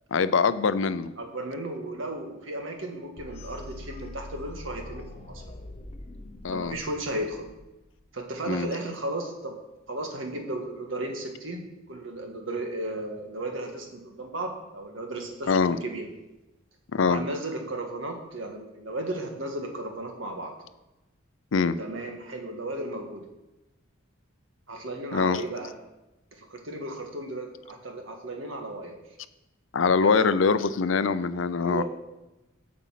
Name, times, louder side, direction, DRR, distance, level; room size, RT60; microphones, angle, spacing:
voice 1, 0.1-1.1 6.4-6.7 8.5-8.7 15.5-15.8 16.9-17.2 21.5-21.7 25.1-25.4 29.7-31.8, left 5 dB, 70° left, 13 dB, 0.5 m, -23 dB
voice 2, 1.2-5.4 6.5-7.5 8.1-9.5 9.9-11.6 11.9-16.1 17.1-20.5 21.8-23.2 24.7-25.7 26.4-29.0 30.0-30.2 31.6-31.8, right 1 dB, 75° right, 3 dB, 1.6 m, -35 dB
sound 1, 3.2-8.1, left 2 dB, 30° left, 0.7 m, -43 dB
8.1 x 5.3 x 7.6 m, 0.99 s
head